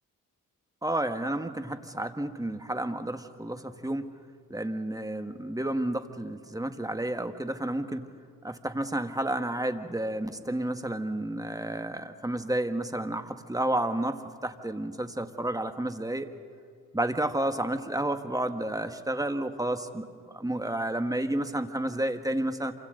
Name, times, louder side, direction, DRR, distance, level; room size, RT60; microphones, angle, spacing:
voice 1, 0.8-4.1 4.5-8.1 8.4-16.3 16.9-22.7, right 1 dB, 10° right, 8 dB, 1.7 m, -31 dB
27.5 x 25.0 x 4.0 m, 2.3 s
supercardioid pair, 50°, 37 cm